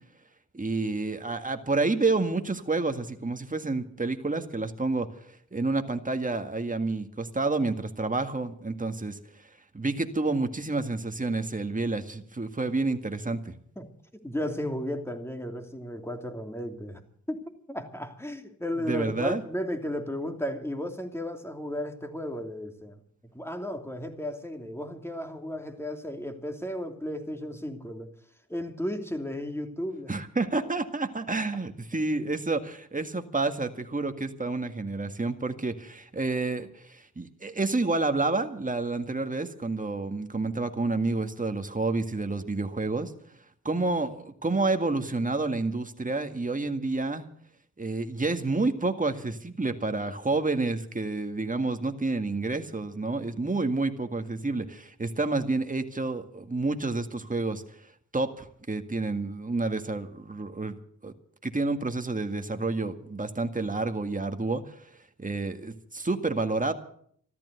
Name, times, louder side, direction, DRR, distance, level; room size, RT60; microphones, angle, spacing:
voice 1, 0.5-9.2 9.7-13.5 18.9-19.4 30.1-43.1 43.6-47.3 47.8-57.6 58.1-60.7 61.0-61.1 61.4-64.9 65.2-66.7, right 3 dB, 25° right, 7 dB, 1.9 m, -29 dB
voice 2, 13.8-17.0 17.3-23.0 23.3-28.1 28.5-30.1, left 1 dB, 5° left, 5 dB, 2.8 m, -34 dB
14.0 x 12.5 x 8.1 m, 0.62 s
cardioid pair, 45°, 34 cm